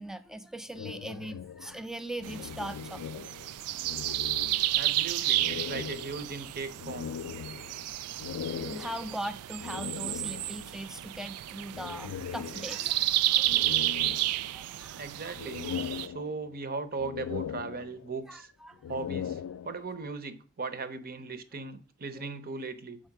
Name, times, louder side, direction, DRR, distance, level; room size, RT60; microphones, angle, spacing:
voice 1, 0.0-3.2 3.7-4.2 8.6-13.6 14.5-15.3 18.3-18.8, right 1 dB, ahead, 0.4 m, -40 dB
sound 1, 0.7-3.5 3.8-4.9 5.3-10.8 11.7-13.0 13.4-14.7 15.1-16.6 17.0-18.3 18.7-20.1, left 8 dB, 85° left, 0.3 m, -40 dB
sound 2, 2.2-16.1, right 14 dB, 85° right, 0.3 m, -32 dB
voice 2, 4.7-7.1 15.0-15.7 16.0-18.5 18.9-23.0, right 4 dB, 45° right, 0.8 m, -38 dB
6.5 x 4.4 x 5.9 m
head